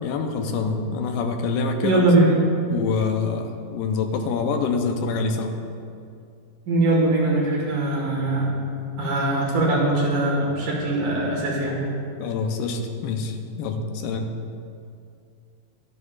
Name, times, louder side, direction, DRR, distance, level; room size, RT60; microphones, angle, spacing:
voice 1, 0.0-2.3 2.7-5.5 12.2-14.3, left 4 dB, 90° left, 5 dB, 2.5 m, -26 dB
voice 2, 1.8-2.3 6.7-8.6 9.0-11.8, right 2 dB, 65° right, -4 dB, 3.2 m, -21 dB
13.0 x 9.5 x 2.4 m, 2.4 s
omnidirectional pair, 4.0 m